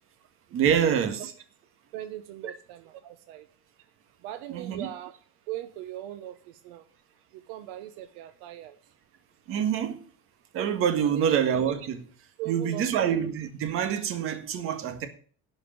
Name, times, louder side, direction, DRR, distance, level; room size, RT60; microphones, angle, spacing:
voice 1, 0.5-1.3 2.4-2.5 4.5-4.9 9.5-10.0 10.5-12.0 12.4-15.1, right 8 dB, 45° right, 1.8 m, -26 dB
voice 2, 1.9-3.5 4.2-5.1 5.5-6.9 7.3-8.8 9.5-9.6 11.0-11.4 12.4-13.0, right 13 dB, 85° right, 1.0 m, -39 dB
12.0 x 5.2 x 8.7 m
cardioid pair, 155°, 30 cm